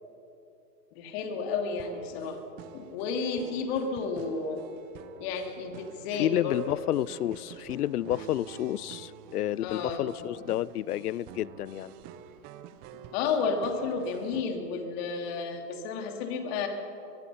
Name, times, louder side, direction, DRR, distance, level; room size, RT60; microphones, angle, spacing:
voice 1, 0.9-2.4 2.7-4.7 5.2-6.8 9.6-10.0 13.1-16.7, left 4 dB, 40° left, 3.1 m, -32 dB
sound 1, 1.8-14.4, right 9 dB, 20° right, 0.6 m, -48 dB
voice 2, 6.2-11.9, left 13 dB, 70° left, 0.6 m, -30 dB
22.5 x 22.5 x 5.7 m
hypercardioid pair, 135°, 48 cm